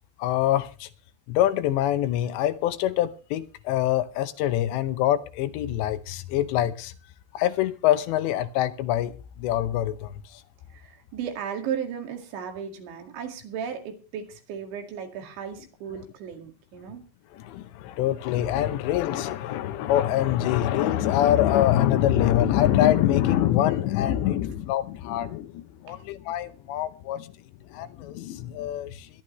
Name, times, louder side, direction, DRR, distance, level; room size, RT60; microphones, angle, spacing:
voice 1, 0.2-0.9 1.3-6.9 7.3-10.1 17.3-27.3 27.7-29.1, left 12 dB, 80° left, 3.0 m, -24 dB
voice 2, 10.7-17.0 25.9-26.0, right 8 dB, 80° right, 4.5 m, -35 dB
23.0 x 12.0 x 3.1 m
omnidirectional pair, 5.2 m